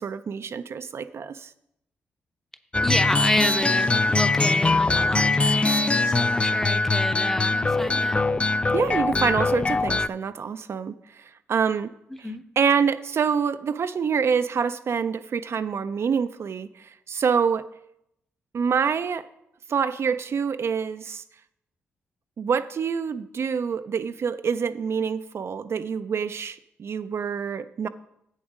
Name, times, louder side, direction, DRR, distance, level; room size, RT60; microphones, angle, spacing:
voice 1, 0.0-1.5 8.7-11.9 12.6-17.7 18.5-19.3 19.7-21.2 22.4-27.9, right 6 dB, 55° right, 10 dB, 0.4 m, -26 dB
sound 1, 2.7-10.1, left 3 dB, 20° left, 0.3 m, -22 dB
voice 2, 2.8-8.2 12.1-12.4, left 1 dB, 5° left, 10 dB, 0.7 m, -29 dB
7.7 x 7.3 x 5.1 m, 0.79 s
supercardioid pair, 45°, 5 cm